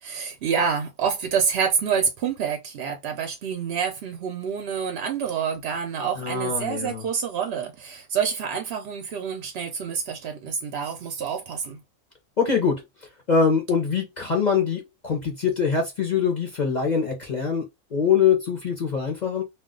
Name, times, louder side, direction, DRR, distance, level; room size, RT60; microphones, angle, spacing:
voice 1, 0.0-11.8, right 6 dB, 65° right, 0.6 m, -27 dB
voice 2, 6.2-7.0 12.4-12.8 13.3-17.7 17.9-19.4, left 6 dB, 45° left, 0.6 m, -23 dB
2.3 x 2.3 x 3.7 m
omnidirectional pair, 1.5 m